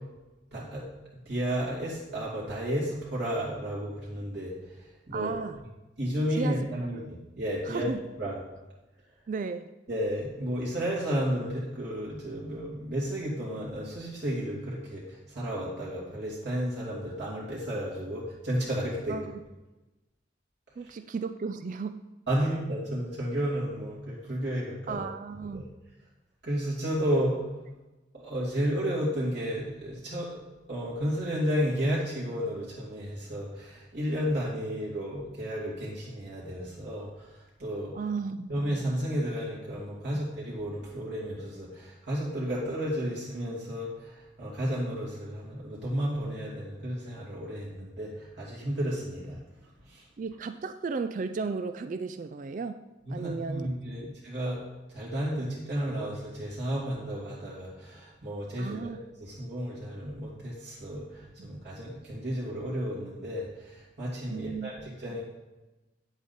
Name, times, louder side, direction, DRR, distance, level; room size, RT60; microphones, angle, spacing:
voice 1, 0.5-0.8 1.3-4.5 4.8-5.3 6.0-7.9 8.2-8.4 9.9-19.3 22.3-25.0 25.5-25.6 26.4-27.4 28.1-30.4 30.7-37.9 38.5-49.4 49.9-50.0 53.0-54.6 54.9-65.2, equal, 60° right, -7 dB, 2.5 m, -32 dB
voice 2, 5.1-5.6 6.4-6.6 7.7-8.0 9.3-9.7 19.1-19.4 20.8-22.1 22.4-22.5 24.9-25.7 37.9-38.5 50.2-52.8 53.1-53.7 58.6-59.1 61.4-61.5 64.3-64.7, right 4 dB, 40° right, 10 dB, 0.3 m, -34 dB
9.4 x 8.0 x 4.2 m, 1.1 s
head